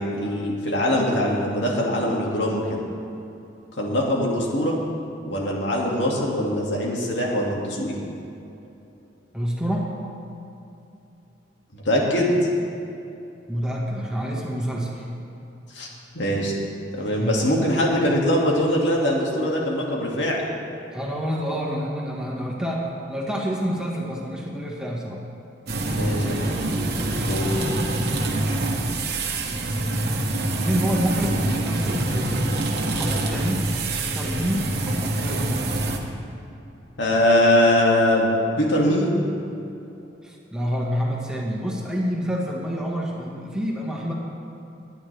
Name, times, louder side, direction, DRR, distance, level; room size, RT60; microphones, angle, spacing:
voice 1, 0.0-2.8 3.7-4.8 5.2-8.0 11.7-12.4 15.7-15.9 16.1-16.5 16.9-20.4 25.9-26.5 27.2-27.5 37.0-38.3 38.6-39.1, left 1 dB, 75° left, -2 dB, 2.2 m, -22 dB
voice 2, 9.3-9.9 13.5-15.1 17.2-17.4 20.9-25.2 30.6-32.4 32.9-33.7 34.0-35.8 40.2-44.1, equal, 5° right, -3 dB, 1.6 m, -28 dB
sound 1, 25.7-36.0, right 2 dB, 60° right, 1.3 m, -25 dB
21.0 x 9.6 x 3.4 m, 2.8 s
head